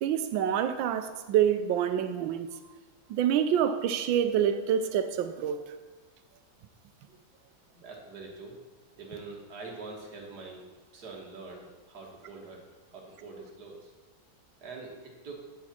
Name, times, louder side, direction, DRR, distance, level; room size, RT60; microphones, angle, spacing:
voice 1, 0.0-2.5 3.1-5.6, right 9 dB, 80° right, 1.4 m, -27 dB
voice 2, 7.7-8.6 9.0-10.6 10.9-12.6 12.9-13.9 14.6-15.4, right 3 dB, 55° right, 1.9 m, -44 dB
9.4 x 6.6 x 4.3 m
omnidirectional pair, 2.1 m